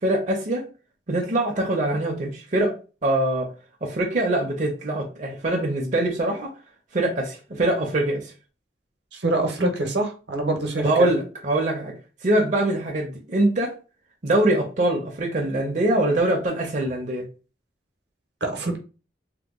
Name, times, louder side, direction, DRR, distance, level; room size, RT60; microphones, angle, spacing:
voice 1, 0.0-0.7 1.1-2.7 3.0-3.5 3.8-6.5 6.9-8.3 10.8-11.9 12.2-13.7 14.2-17.3, right 1 dB, 45° right, 0.6 m, -23 dB
voice 2, 9.1-10.9 18.4-18.8, right 2 dB, 75° right, 0.9 m, -25 dB
2.8 x 2.2 x 3.6 m
head